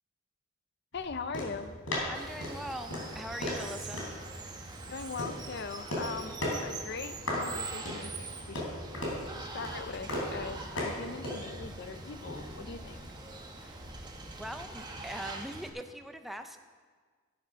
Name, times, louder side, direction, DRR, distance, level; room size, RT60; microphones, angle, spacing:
sound 1, 0.9-15.1, left 1 dB, 75° left, 3.5 m, -39 dB
voice 1, 0.9-1.8 4.9-8.7 9.4-13.0, left 5 dB, 50° left, 11 dB, 0.6 m, -41 dB
voice 2, 2.0-4.1 13.6-13.8 14.4-16.6, equal, ahead, 6 dB, 0.5 m, -42 dB
Water, 2.1-15.7, right 3 dB, 20° right, 1.0 m, -44 dB
13.5 x 7.6 x 5.7 m, 1.5 s
head